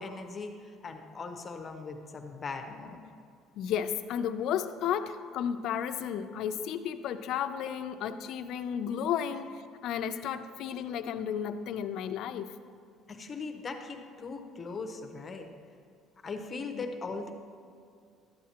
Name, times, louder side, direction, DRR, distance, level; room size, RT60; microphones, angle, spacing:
voice 1, 0.0-3.0 13.1-15.5 16.2-17.3, left 4 dB, 25° left, 5 dB, 0.7 m, -39 dB
voice 2, 3.6-12.6 16.7-16.8, left 8 dB, 55° left, 9 dB, 0.4 m, -33 dB
12.0 x 8.4 x 2.9 m, 2.3 s
cardioid pair, 160°, 0 cm